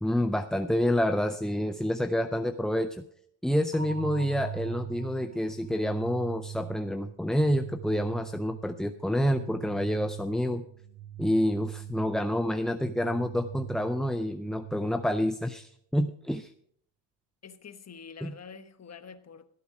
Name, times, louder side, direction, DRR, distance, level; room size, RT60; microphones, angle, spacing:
voice 1, 0.0-3.0 3.4-10.6 11.2-16.5 18.2-18.3, equal, ahead, 0.4 m, -28 dB
sound 1, 3.7-15.7, right 9 dB, 30° right, 1.1 m, -42 dB
voice 2, 17.4-19.5, left 6 dB, 35° left, 1.3 m, -46 dB
16.5 x 8.4 x 4.9 m
cardioid pair, 95°, 48 cm